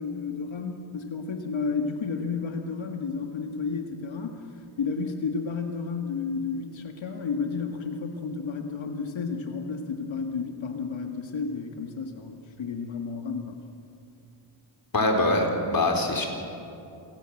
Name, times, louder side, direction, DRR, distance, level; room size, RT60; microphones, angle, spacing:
voice 1, 0.0-4.4 4.8-13.6, left 5 dB, 65° left, 3 dB, 2.0 m, -32 dB
voice 2, 14.9-16.3, left 2 dB, 45° left, 2 dB, 4.6 m, -23 dB
26.5 x 18.5 x 7.9 m, 2.7 s
cardioid pair, 75°, 50 cm